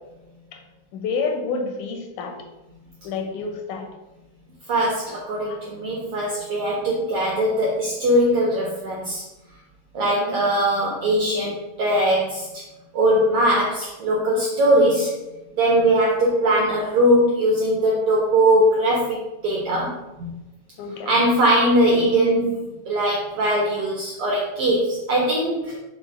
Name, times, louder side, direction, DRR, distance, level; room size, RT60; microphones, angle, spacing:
voice 1, 0.9-2.4 3.0-3.9 5.4-5.6 10.0-10.4 20.8-21.2, left 4 dB, 85° left, 3 dB, 2.0 m, -29 dB
voice 2, 4.7-9.2 9.9-12.5 12.9-15.1 15.6-20.3 21.1-22.6 22.9-25.8, right 1 dB, 90° right, -3 dB, 1.2 m, -20 dB
5.3 x 2.0 x 4.5 m, 1.0 s
omnidirectional pair, 3.4 m